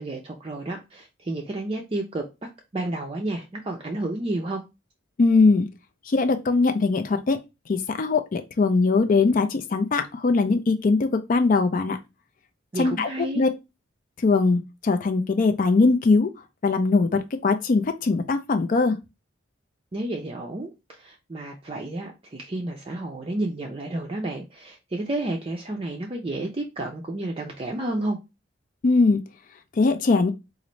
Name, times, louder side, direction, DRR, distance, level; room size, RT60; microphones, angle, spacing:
voice 1, 0.0-2.2 2.7-4.6 12.7-13.4 19.9-28.2, right 2 dB, 30° right, 0.5 m, -31 dB
voice 2, 5.2-5.7 6.1-7.4 7.7-12.0 12.8-13.5 14.2-16.3 16.6-19.0 28.8-29.2 29.8-30.3, left 3 dB, 40° left, 0.4 m, -21 dB
3.9 x 2.5 x 3.1 m
head